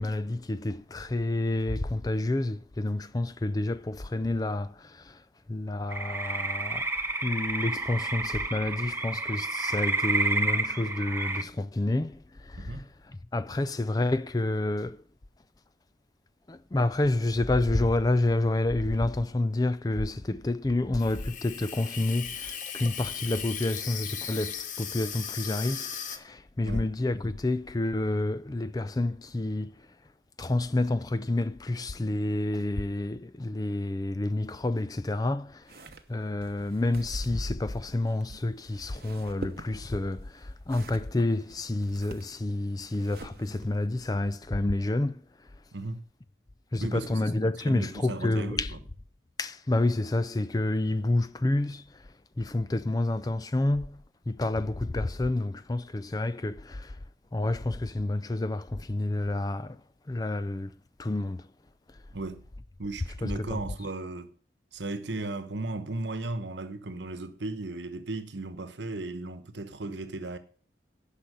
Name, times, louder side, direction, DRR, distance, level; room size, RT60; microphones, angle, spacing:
voice 1, 0.0-5.2 5.5-6.9 7.2-15.0 16.5-29.9 30.4-35.8 36.1-45.5 46.7-48.7 49.4-52.1 52.4-57.0 57.3-61.5 63.2-63.6, left 2 dB, 20° left, 0.4 m, -29 dB
sound 1, 5.9-11.4, right 2 dB, 15° right, 0.7 m, -30 dB
voice 2, 12.5-12.9 26.6-26.9 45.7-46.0 46.8-47.3 47.6-48.8 62.1-62.5 62.8-64.3 64.7-70.4, right 2 dB, 80° right, 1.1 m, -36 dB
Water tap faucet / Sink (filling or washing), 21.0-26.2, left 8 dB, 45° left, 0.9 m, -37 dB
sound 2, 35.6-43.9, right 2 dB, 55° right, 1.0 m, -47 dB
10.5 x 5.8 x 7.7 m
head